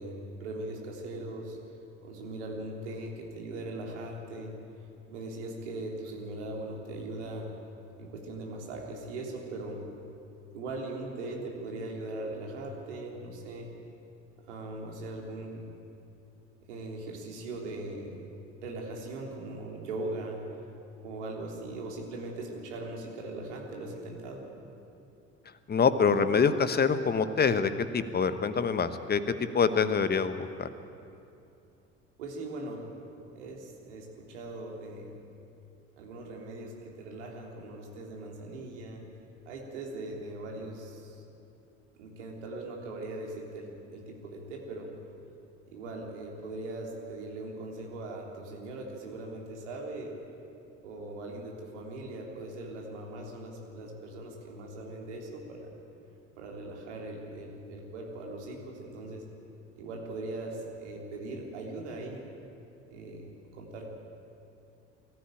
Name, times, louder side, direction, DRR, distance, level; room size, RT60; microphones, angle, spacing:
voice 1, 0.0-1.6 2.0-4.6 5.1-7.5 8.0-9.8 10.5-13.7 14.5-15.7 16.7-18.2 18.6-20.4 21.0-24.5 32.2-32.8 33.3-35.2 36.0-39.0 39.4-41.2 42.0-44.9 45.7-50.1 50.8-55.7 56.4-59.3 59.8-62.3 62.9-63.3 63.6-63.9, right 2 dB, 70° right, -1 dB, 3.5 m, -40 dB
voice 2, 25.7-29.2 29.5-30.7, left 5 dB, 25° left, 11 dB, 1.2 m, -25 dB
22.5 x 14.5 x 8.9 m, 2.7 s
figure-of-eight pair, 55°, 36 cm